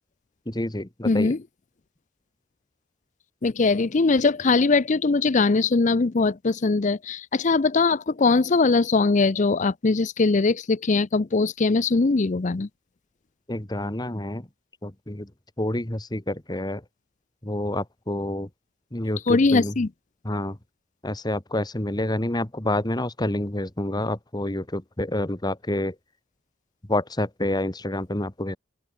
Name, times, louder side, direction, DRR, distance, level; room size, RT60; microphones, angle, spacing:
voice 1, 0.5-1.4 13.5-14.5 14.8-15.3 15.6-16.8 17.4-18.5 18.9-19.8 20.2-20.6 21.0-26.0 26.9-28.6, left 1 dB, 20° left, 1.6 m, -28 dB
voice 2, 1.1-1.4 3.4-12.7 19.3-19.9, left 3 dB, 40° left, 0.5 m, -21 dB
open air
head